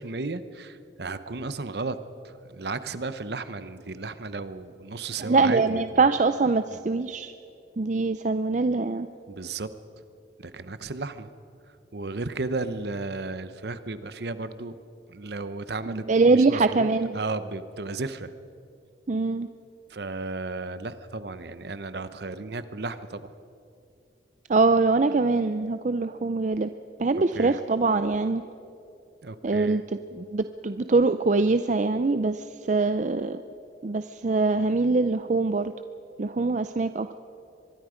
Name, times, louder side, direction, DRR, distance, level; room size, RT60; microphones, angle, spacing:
voice 1, 0.0-2.0 2.2-6.1 6.7-6.8 9.3-9.7 10.4-11.3 11.9-14.8 15.1-16.9 17.1-18.3 19.9-23.3 27.3-27.6 29.2-29.8, right 3 dB, 60° right, 12 dB, 0.9 m, -34 dB
voice 2, 5.2-7.3 7.8-9.1 15.9-17.2 19.1-19.5 24.5-26.7 27.0-28.4 29.4-29.8 30.1-33.4 33.8-35.7 36.2-37.2, right 3 dB, 40° right, 10 dB, 0.5 m, -23 dB
24.0 x 22.0 x 5.1 m, 2.6 s
head